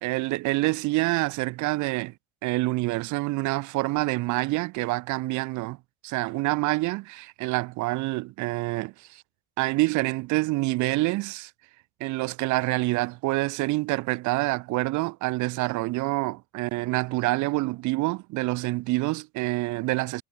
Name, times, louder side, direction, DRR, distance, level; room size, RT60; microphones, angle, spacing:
voice 1, 0.0-2.1 2.4-5.8 6.0-9.2 9.6-11.5 12.0-20.2, right 21 dB, 60° right, 1.1 m, -27 dB
cardioid pair, 130°, 33 cm